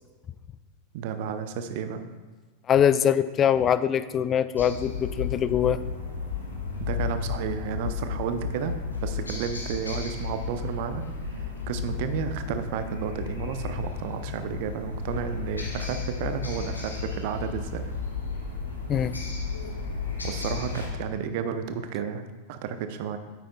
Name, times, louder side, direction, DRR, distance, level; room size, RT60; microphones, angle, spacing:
voice 1, 0.9-2.0 6.8-8.7 9.0-11.0 11.7-17.8 20.2-23.2, right 7 dB, 50° right, 9 dB, 0.6 m, -32 dB
voice 2, 2.7-5.8 18.9-19.1, left 9 dB, 25° left, 13 dB, 0.3 m, -23 dB
sound 1, 4.6-20.9, left 5 dB, 80° left, 1.6 m, -33 dB
9.1 x 8.7 x 2.3 m, 1.4 s
figure-of-eight pair, 90°, 0 cm